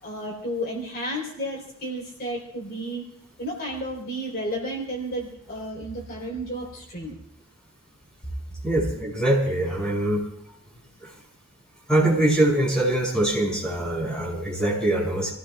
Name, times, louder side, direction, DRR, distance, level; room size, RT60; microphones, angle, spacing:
voice 1, 0.0-3.0 3.4-7.2, equal, 45° left, -2 dB, 3.8 m, -32 dB
voice 2, 8.6-10.2 11.0-11.1 11.9-15.3, right 1 dB, 5° left, -4 dB, 6.2 m, -23 dB
29.5 x 17.0 x 2.4 m, 0.71 s
head